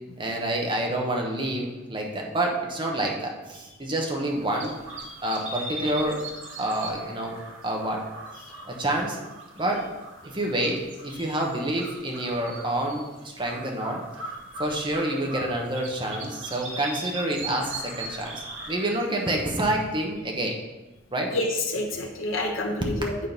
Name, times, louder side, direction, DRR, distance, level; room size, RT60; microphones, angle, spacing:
voice 1, 0.2-4.8 5.2-6.2 6.6-7.3 7.6-8.0 8.7-9.2 9.6-9.9 10.2-14.0 14.6-20.6 21.1-21.3, right 1 dB, 25° right, 0 dB, 1.2 m, -28 dB
sound 1, 4.1-20.2, right 2 dB, 80° right, 1.5 m, -40 dB
voice 2, 21.3-23.3, left 1 dB, 90° left, 0 dB, 1.1 m, -28 dB
9.5 x 3.9 x 5.3 m, 1.1 s
head